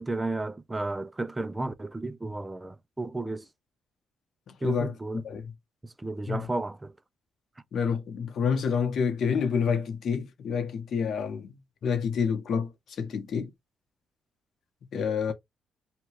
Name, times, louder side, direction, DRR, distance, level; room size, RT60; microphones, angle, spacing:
voice 1, 0.0-3.5 4.6-5.3 5.8-6.9, right 2 dB, 15° right, 0.3 m, -33 dB
voice 2, 4.5-4.9 5.2-5.4 6.3-6.4 7.7-11.5 11.8-12.7 13.0-13.5 14.9-15.3, left 6 dB, 60° left, 0.9 m, -28 dB
2.8 x 2.3 x 2.9 m
cardioid pair, 90°, 0 cm